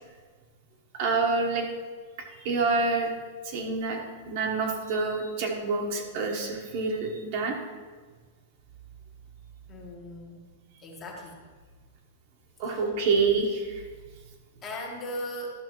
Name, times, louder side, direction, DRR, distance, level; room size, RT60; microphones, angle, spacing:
voice 1, 1.0-1.7 2.4-3.1 3.4-4.0 4.3-7.6 12.6-13.8, right 4 dB, 45° right, 1 dB, 1.1 m, -27 dB
voice 2, 9.7-10.4 10.8-11.3 12.7-12.8 14.6-15.5, left 1 dB, 20° left, -1 dB, 1.4 m, -38 dB
12.0 x 6.3 x 3.1 m, 1.5 s
supercardioid pair, 165°, 0 cm